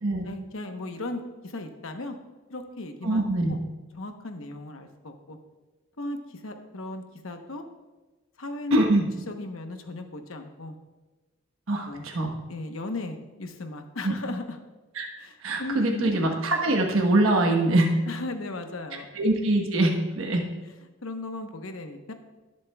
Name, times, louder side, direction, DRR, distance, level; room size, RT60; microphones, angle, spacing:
voice 1, 0.2-2.2 2.5-3.2 3.5-3.6 3.9-5.4 6.0-7.6 8.4-8.8 9.3-10.8 11.9-12.1 12.5-14.6 15.2-15.3 15.6-16.1 18.1-19.1 21.0-22.1, left 2 dB, 80° left, 6 dB, 1.0 m, -36 dB
voice 2, 3.0-3.5 8.7-9.1 11.7-12.3 14.0-14.1 15.0-15.1 15.4-17.9 19.1-20.4, right 2 dB, 80° right, 2 dB, 1.2 m, -23 dB
19.0 x 7.4 x 2.3 m, 1.2 s
head